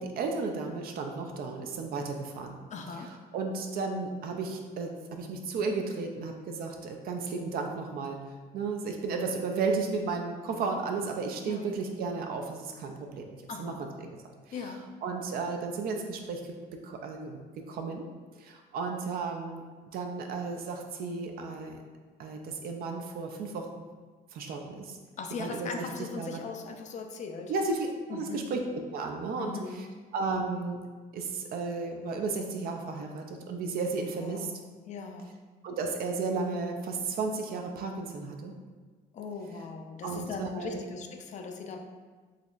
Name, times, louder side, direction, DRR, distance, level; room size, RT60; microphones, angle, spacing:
voice 1, 0.0-2.6 3.0-8.2 8.5-13.3 13.6-13.9 15.0-16.5 16.8-17.4 17.7-18.1 18.4-19.6 19.9-21.8 22.2-23.8 24.3-25.0 25.4-25.8 26.2-26.4 27.5-29.9 30.1-30.8 31.1-34.5 35.6-38.5 40.0-40.8, right 4 dB, 60° right, 3 dB, 0.4 m, -33 dB
voice 2, 2.7-3.1 11.4-11.7 13.5-13.8 14.5-14.8 25.2-27.5 28.1-28.5 29.4-29.8 34.2-35.4 39.1-41.8, left 4 dB, 45° left, 4 dB, 0.4 m, -39 dB
4.1 x 2.8 x 2.4 m, 1.4 s
cardioid pair, 110°, 17 cm